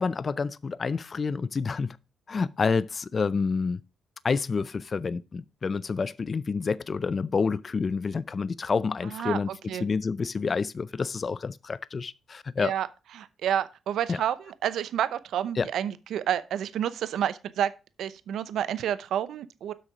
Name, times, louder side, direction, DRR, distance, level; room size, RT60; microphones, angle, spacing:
voice 1, 0.0-2.0 2.3-3.8 4.2-12.7 14.1-14.2 15.6-15.7, left 5 dB, 40° left, 0.5 m, -28 dB
voice 2, 9.1-9.8 12.6-12.9 13.2-17.7 18.0-19.7, right 10 dB, 75° right, 0.7 m, -29 dB
8.1 x 6.2 x 4.9 m
cardioid pair, 80°, 0 cm